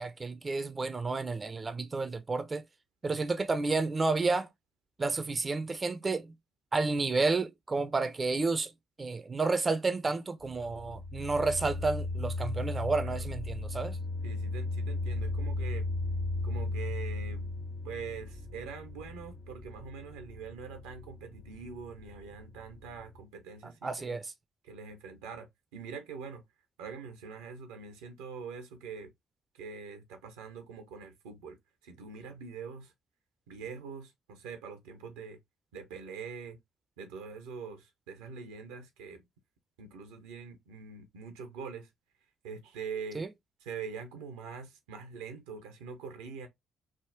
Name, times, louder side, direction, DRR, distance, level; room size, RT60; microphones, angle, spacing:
voice 1, 0.0-2.6 3.0-4.5 5.0-6.3 6.7-8.7 9.0-14.0 23.8-24.2 43.2-43.3, right 3 dB, 30° right, 0.4 m, -31 dB
sound 1, 10.4-23.2, left 2 dB, 45° left, 0.5 m, -36 dB
voice 2, 14.2-15.9 16.4-17.5 17.8-24.2 24.6-26.5 26.8-29.1 29.5-31.6 31.8-32.9 33.5-35.4 35.7-36.6 37.0-39.2 39.8-41.9 42.4-43.3 43.6-46.5, right 5 dB, 80° right, 0.6 m, -44 dB
3.4 x 2.0 x 2.5 m
hypercardioid pair, 45°, 0 cm